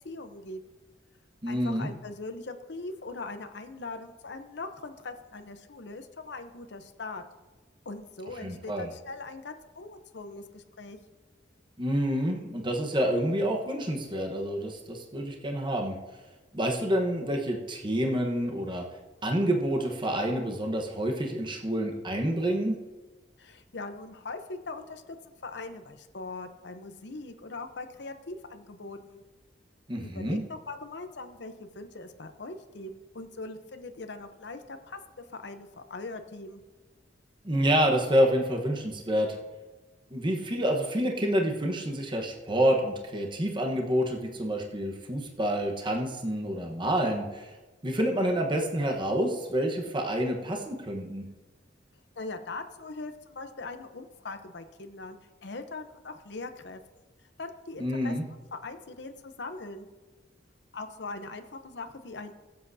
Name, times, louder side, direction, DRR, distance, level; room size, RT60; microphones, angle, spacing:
voice 1, 0.0-0.6 1.5-7.2 7.8-11.0 23.4-29.2 30.0-35.0 35.3-36.6 52.2-56.8 57.4-58.1 58.5-59.9 60.7-62.3, left 3 dB, 65° left, 7 dB, 0.8 m, -41 dB
voice 2, 1.4-1.9 8.4-8.9 11.8-16.0 16.5-18.8 19.2-22.8 29.9-30.4 37.4-39.3 40.1-47.5 47.8-51.2 57.8-58.2, equal, 25° right, 1 dB, 1.2 m, -28 dB
22.5 x 7.6 x 2.8 m, 1.2 s
head